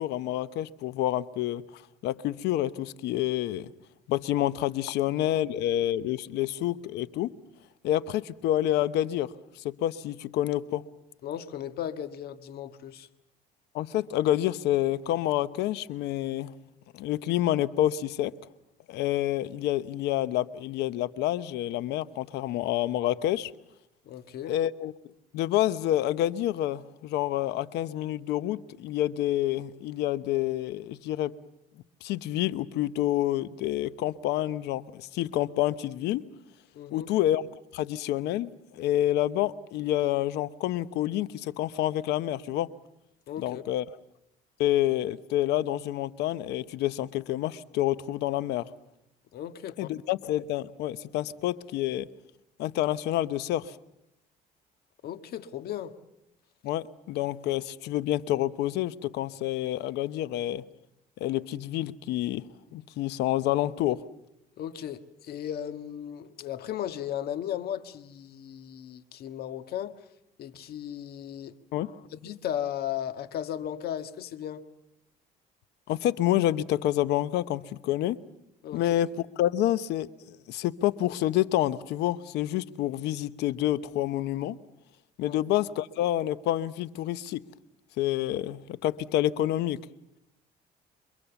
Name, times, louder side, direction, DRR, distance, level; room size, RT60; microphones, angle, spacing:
voice 1, 0.0-3.7 4.1-7.3 7.8-10.9 13.7-16.5 16.9-18.3 18.9-23.5 24.4-24.9 25.3-31.4 32.0-36.2 36.9-37.5 37.7-42.7 43.4-43.8 44.6-48.7 49.8-52.1 52.6-53.8 56.6-60.6 61.2-62.5 62.7-64.1 71.7-72.0 75.9-78.2 78.7-84.6 85.2-87.4 88.0-89.8, left 13 dB, 85° left, 0.9 m, -28 dB
voice 2, 11.2-13.1 24.0-24.5 36.7-37.1 43.3-43.6 49.3-49.9 55.0-55.9 64.6-70.0 70.4-71.5 72.1-74.6 78.6-78.8 85.2-85.4, left 10 dB, 70° left, 1.6 m, -36 dB
28.5 x 23.5 x 7.1 m
cardioid pair, 110°, 17 cm